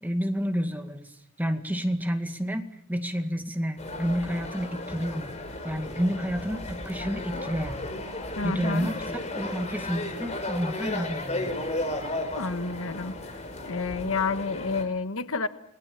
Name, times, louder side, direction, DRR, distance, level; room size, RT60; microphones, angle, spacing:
voice 1, 0.0-5.3 5.6-7.8 8.4-8.9 9.3-11.7, equal, 10° right, 5 dB, 2.1 m, -30 dB
sound 1, 3.8-14.8, left 2 dB, 30° left, 4.6 m, -34 dB
voice 2, 8.4-8.9 12.4-15.5, left 4 dB, 65° left, 10 dB, 1.3 m, -30 dB
29.5 x 20.0 x 7.2 m, 0.74 s
head